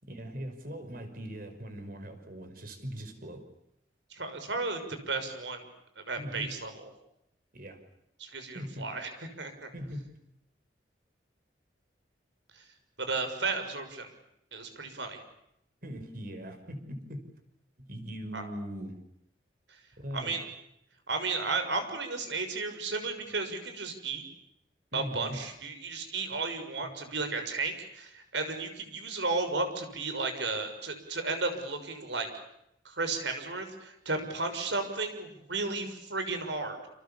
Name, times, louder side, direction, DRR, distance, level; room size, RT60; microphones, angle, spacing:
voice 1, 0.0-3.5 6.2-6.6 7.5-7.8 8.5-8.9 9.7-10.2 15.8-17.3 17.8-19.0 20.0-20.3 24.9-25.4 26.8-27.0, equal, 50° right, 7 dB, 5.5 m, -40 dB
voice 2, 4.1-5.6 6.1-6.9 8.2-9.1 9.4-9.7 12.5-12.6 13.0-14.1 14.5-15.2 18.3-18.5 19.7-19.8 20.1-20.5 21.1-24.2 24.9-32.3 32.8-36.8, right 3 dB, 75° right, 7 dB, 6.4 m, -34 dB
29.5 x 28.0 x 7.2 m, 0.78 s
head